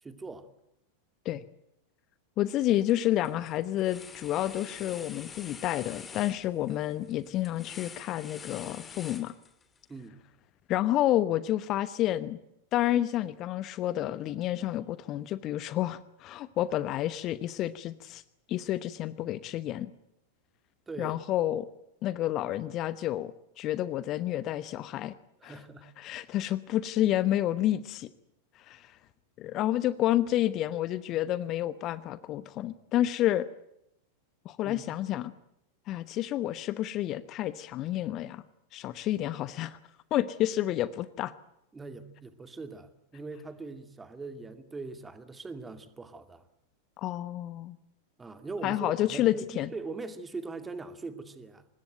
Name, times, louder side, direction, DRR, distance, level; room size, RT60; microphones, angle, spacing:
voice 1, 0.0-0.5 9.9-10.2 20.9-21.2 25.4-25.9 34.6-34.8 41.7-46.4 48.2-51.7, right 3 dB, 15° right, 10 dB, 2.4 m, -41 dB
voice 2, 2.4-9.3 10.7-12.4 12.7-18.2 18.5-19.9 21.0-21.7 22.0-25.1 25.4-25.6 26.0-28.1 28.5-29.0 29.4-33.5 34.4-35.3 35.9-38.4 38.7-39.8 40.1-41.3 47.0-47.8 48.6-49.7, left 13 dB, 35° left, 16 dB, 1.0 m, -29 dB
sound 1, 2.6-2.9 3.2-9.8, left 5 dB, 20° left, 2.6 m, -46 dB
25.0 x 20.0 x 9.1 m, 0.82 s
figure-of-eight pair, 90°, 0 cm